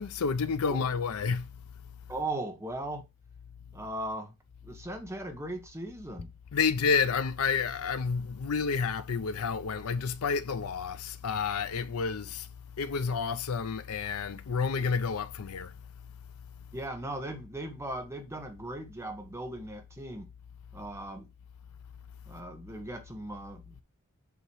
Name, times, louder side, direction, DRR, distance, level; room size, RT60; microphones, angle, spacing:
voice 1, 0.0-1.5 6.5-12.5 12.8-15.7, left 5 dB, 75° left, 0.5 m, -30 dB
voice 2, 2.1-3.1 3.7-4.3 4.6-6.3 16.7-20.3 20.7-21.3 22.3-23.8, right 1 dB, 15° right, 1.2 m, -38 dB
7.1 x 3.0 x 4.7 m
head